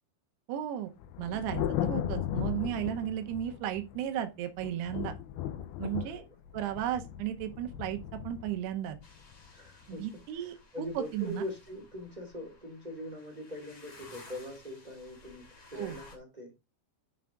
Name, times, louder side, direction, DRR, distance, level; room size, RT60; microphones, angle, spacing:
voice 1, 0.5-0.9 1.2-5.1 5.8-6.2 6.5-9.0 9.9-11.4 15.8-15.9, right 11 dB, 75° right, 7 dB, 2.9 m, -35 dB
Thunder, 1.0-4.1 4.6-9.9, left 10 dB, 80° left, 2.4 m, -36 dB
voice 2, 1.3-1.6 6.0-6.4 9.5-16.5, left 1 dB, 35° right, 1 dB, 0.6 m, -43 dB
sound 1, 9.0-16.2, left 3 dB, 30° left, 3.1 m, -55 dB
12.5 x 5.7 x 2.5 m, 0.26 s
omnidirectional pair, 5.2 m